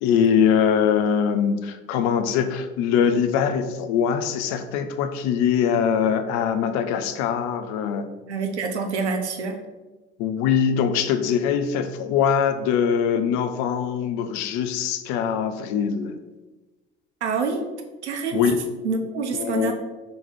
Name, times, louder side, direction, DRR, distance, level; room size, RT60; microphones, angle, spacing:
voice 1, 0.0-8.1 10.2-16.2 18.3-18.6 19.3-19.7, left 7 dB, 55° left, 9 dB, 0.5 m, -22 dB
voice 2, 8.3-9.6 17.2-17.6 18.0-18.6 18.8-19.7, right 4 dB, 85° right, 5 dB, 0.5 m, -26 dB
3.8 x 3.0 x 3.6 m, 1.2 s
figure-of-eight pair, 55°, 33 cm